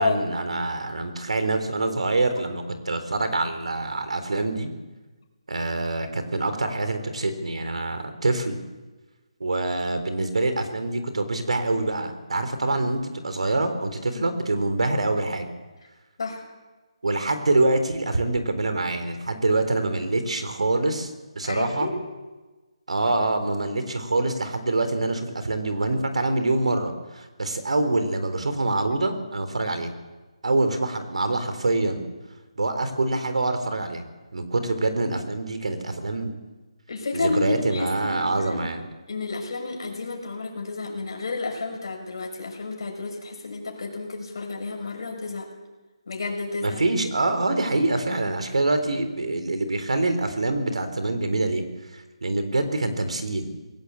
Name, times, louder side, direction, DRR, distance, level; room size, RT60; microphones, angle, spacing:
voice 1, 0.0-4.7 5.5-8.6 9.4-13.0 13.2-15.5 17.0-21.9 22.9-29.9 30.4-32.0 32.6-34.0 34.3-36.4 37.1-38.8 46.6-51.6 51.9-53.6, right 2 dB, 85° right, 8 dB, 4.0 m, -25 dB
voice 2, 21.4-22.0 36.9-38.7 39.1-45.5 46.1-46.8, left 4 dB, 45° left, 1 dB, 6.3 m, -31 dB
21.5 x 17.5 x 8.5 m, 1.2 s
hypercardioid pair, 175°, 3 cm